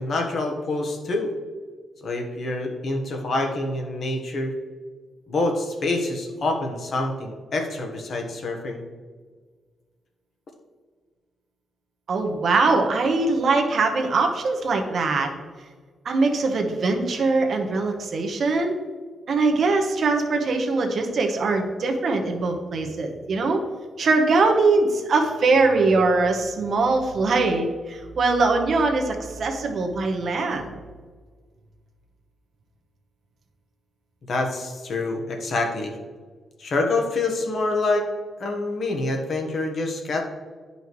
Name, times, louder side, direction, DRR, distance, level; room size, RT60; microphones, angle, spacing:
voice 1, 0.0-1.3 2.0-4.5 5.3-8.8 34.3-35.9 36.6-38.1 38.4-40.2, left 2 dB, 45° left, 2 dB, 1.2 m, -26 dB
voice 2, 12.1-15.3 16.0-18.8 19.3-23.6 24.0-30.7, right 3 dB, 45° right, 3 dB, 1.0 m, -22 dB
11.0 x 5.5 x 3.1 m, 1.5 s
wide cardioid pair, 160°, 0 cm